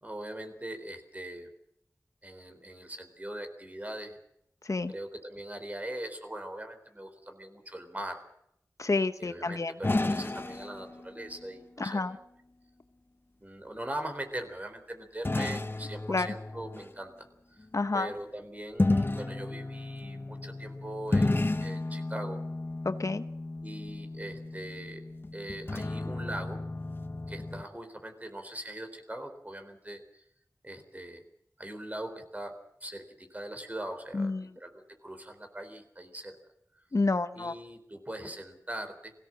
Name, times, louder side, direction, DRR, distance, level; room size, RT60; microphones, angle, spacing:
voice 1, 0.0-1.5 2.2-4.2 4.9-8.2 9.2-12.2 13.4-17.7 17.9-22.4 23.6-25.0 25.3-26.6 27.3-30.2 30.6-31.2 31.6-32.5 32.8-36.4 37.3-39.1, right 1 dB, 25° right, 5 dB, 3.9 m, -41 dB
voice 2, 8.8-9.7 11.8-12.2 16.1-16.3 17.7-18.1 22.8-23.2 34.1-34.5 36.9-37.5, left 3 dB, 60° left, 11 dB, 1.0 m, -29 dB
sound 1, 9.8-11.4 15.2-16.9 18.8-27.6, left 2 dB, 35° left, 1.1 m, -32 dB
22.5 x 17.0 x 7.6 m, 0.75 s
wide cardioid pair, 70°, 6 cm